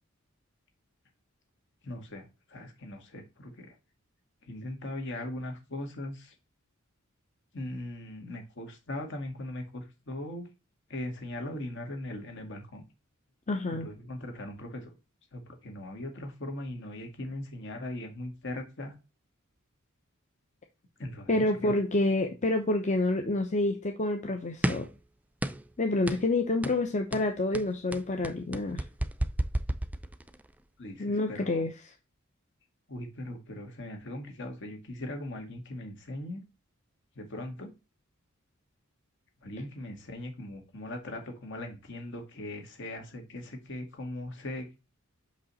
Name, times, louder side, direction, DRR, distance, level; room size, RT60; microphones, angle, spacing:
voice 1, 1.8-3.8 4.4-6.3 7.5-10.5 10.9-12.8 13.7-14.9 15.3-18.9 21.0-21.7 30.8-31.7 32.9-36.4 37.1-37.7 39.4-44.7, left 1 dB, 60° left, 2.1 m, -39 dB
voice 2, 13.5-13.9 21.3-24.9 25.8-28.8 31.0-31.7, left 2 dB, 35° left, 0.8 m, -28 dB
sound 1, 24.6-25.0 25.4-25.7 26.1-26.3 26.6-26.8 27.1-30.4, right 1 dB, 5° right, 0.4 m, -31 dB
6.2 x 5.3 x 4.1 m
head